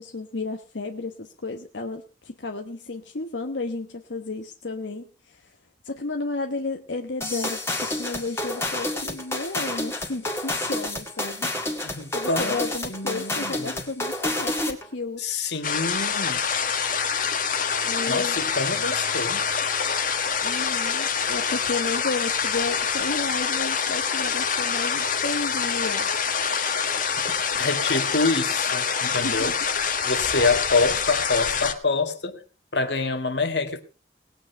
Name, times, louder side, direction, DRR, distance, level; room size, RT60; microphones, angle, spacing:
voice 1, 0.0-5.6 5.8-11.5 12.1-15.5 17.8-18.4 20.4-26.1 29.0-29.5, left 3 dB, 85° left, 1.2 m, -33 dB
sound 1, 7.2-14.9, left 1 dB, 15° left, 2.0 m, -29 dB
voice 2, 11.8-13.9 15.2-16.4 18.1-19.4 27.2-27.3 27.6-29.6 30.0-32.4 32.7-33.8, left 3 dB, 70° left, 1.9 m, -26 dB
sound 2, 15.6-31.7, left 6 dB, 50° left, 1.5 m, -26 dB
19.5 x 8.8 x 4.6 m
head